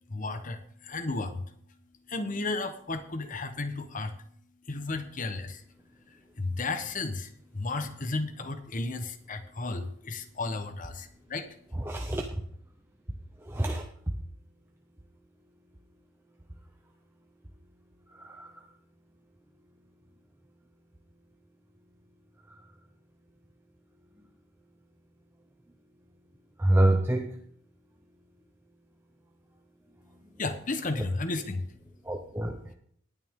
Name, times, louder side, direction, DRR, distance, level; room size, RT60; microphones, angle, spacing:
voice 1, 0.1-1.4 2.1-4.2 4.7-5.6 6.1-11.6 30.4-31.7 32.5-32.7, left 3 dB, 45° left, 9 dB, 1.1 m, -34 dB
voice 2, 11.9-12.3 13.5-13.8 18.2-18.5 26.6-27.4 32.1-32.6, right 1 dB, 10° right, 2 dB, 0.8 m, -26 dB
18.5 x 9.1 x 3.7 m, 0.65 s
head